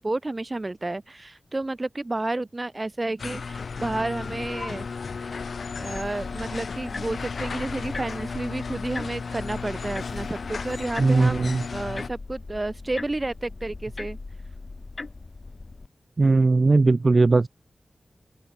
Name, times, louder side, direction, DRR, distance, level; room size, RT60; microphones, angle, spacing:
voice 1, 0.0-4.9 5.2-5.4 5.8-14.2, right 2 dB, 30° right, 2.6 m, -31 dB
sound 1, 3.2-12.1, left 5 dB, 75° left, 0.6 m, -34 dB
sound 2, 5.9-15.9, left 3 dB, 45° left, 1.5 m, -40 dB
voice 2, 11.0-11.6 16.2-17.5, right 3 dB, 45° right, 0.4 m, -19 dB
open air
wide cardioid pair, 80°, 0 cm